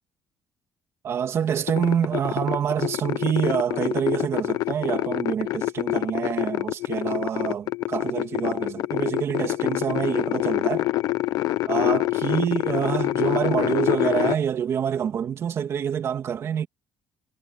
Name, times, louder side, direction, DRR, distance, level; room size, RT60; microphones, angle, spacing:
voice 1, 1.0-10.9 11.7-16.7, right 8 dB, 45° right, 2.5 m, -26 dB
sound 1, 1.7-14.4, left 17 dB, 75° left, 0.8 m, -26 dB
cardioid pair, 145°, 6 cm